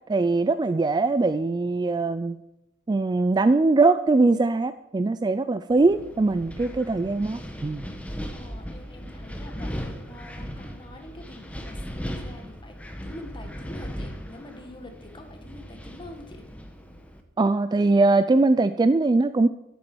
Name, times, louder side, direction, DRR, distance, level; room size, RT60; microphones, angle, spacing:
voice 1, 0.1-2.4 2.9-7.9 17.4-19.5, right 3 dB, 20° right, 13 dB, 0.3 m, -21 dB
Wind, 5.7-17.2, equal, 5° left, 1.1 m, -38 dB
voice 2, 8.3-16.5, left 1 dB, 25° left, 5 dB, 1.7 m, -45 dB
11.5 x 8.6 x 6.1 m, 0.89 s
head